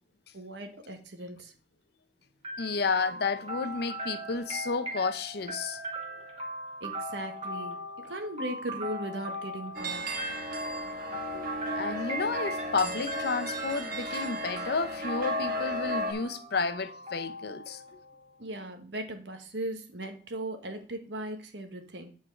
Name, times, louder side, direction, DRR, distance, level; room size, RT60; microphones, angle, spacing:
voice 1, 0.3-1.5 6.8-7.8 8.0-10.1 18.4-22.1, right 1 dB, 80° right, 1.4 m, -38 dB
sound 1, 2.4-18.2, equal, 35° right, 1.7 m, -40 dB
voice 2, 2.6-5.8 11.3-11.5 11.8-17.8, left 4 dB, 65° left, 0.7 m, -31 dB
sound 2, 9.7-16.1, equal, 55° right, 1.4 m, -34 dB
8.5 x 4.7 x 4.5 m
head